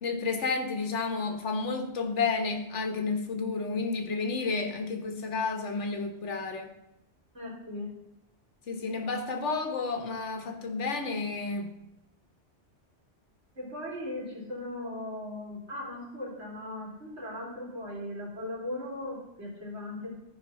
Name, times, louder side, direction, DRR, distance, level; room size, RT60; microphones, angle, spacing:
voice 1, 0.0-6.7 8.7-11.7, left 4 dB, 80° left, 5 dB, 1.5 m, -31 dB
voice 2, 7.3-8.0 13.6-20.1, left 1 dB, 70° right, -4 dB, 3.5 m, -38 dB
13.0 x 5.1 x 5.6 m, 0.86 s
omnidirectional pair, 1.2 m